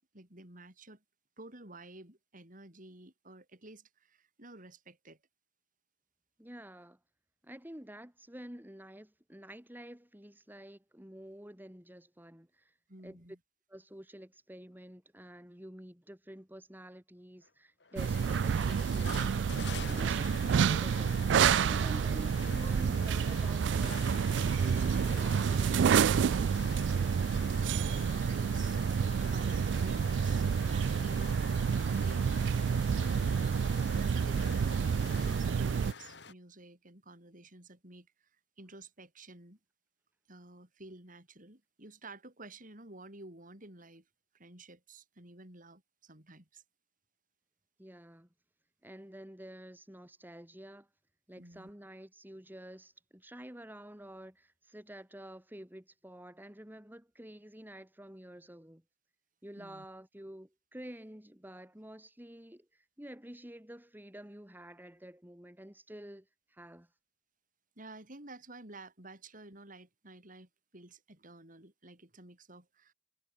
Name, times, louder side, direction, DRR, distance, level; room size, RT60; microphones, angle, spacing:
voice 1, 0.1-1.0 1.4-5.2 12.9-13.4 17.9-18.2 26.6-28.8 29.1-31.5 31.8-32.5 32.8-38.3 38.6-39.6 40.3-44.1 44.3-46.6 51.4-51.7 59.6-59.8 67.8-72.9, right 2 dB, 50° right, 6.5 m, -52 dB
voice 2, 6.4-7.0 7.4-12.7 13.0-13.2 13.7-21.2 21.6-26.3 47.8-48.3 48.8-50.9 51.3-58.8 59.4-66.9, right 1 dB, 10° right, 2.7 m, -49 dB
sound 1, 17.4-17.5 17.8-36.3, left 5 dB, 70° left, 2.3 m, -47 dB
sound 2, 18.0-35.9, right 6 dB, 75° right, 0.3 m, -29 dB
head